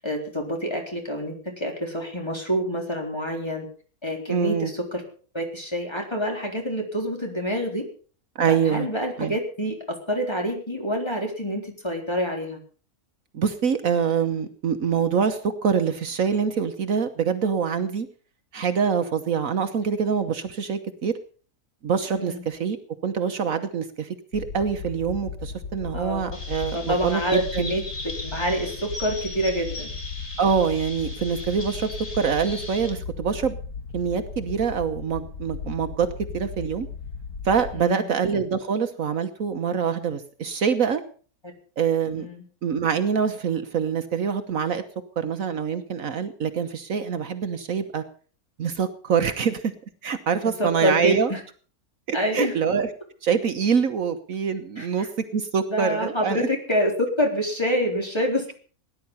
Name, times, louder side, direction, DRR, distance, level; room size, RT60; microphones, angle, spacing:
voice 1, 0.0-3.7 4.0-5.0 5.3-7.9 8.5-9.8 10.1-12.6 22.1-22.4 25.9-26.2 26.7-27.4 27.7-27.8 28.2-29.9 37.7-38.1 42.2-42.4 50.6-51.4 52.1-52.6 54.8-55.1 55.7-58.5, equal, 15° left, 1 dB, 3.9 m, -27 dB
voice 2, 4.3-4.7 8.4-8.9 9.2-9.4 13.3-18.1 18.5-21.1 21.8-22.8 23.0-27.7 30.4-33.6 33.9-36.9 37.4-41.0 41.8-42.3 42.6-44.8 45.2-48.0 48.6-49.7 50.0-51.3 52.1-52.9 53.2-56.5, right 6 dB, 65° right, 8 dB, 1.4 m, -25 dB
sound 1, 24.3-37.8, left 5 dB, 80° left, 2.2 m, -36 dB
Chirp tweet, 26.3-32.9, left 2 dB, 50° left, 3.7 m, -38 dB
18.5 x 10.5 x 5.6 m, 0.41 s
omnidirectional pair, 1.6 m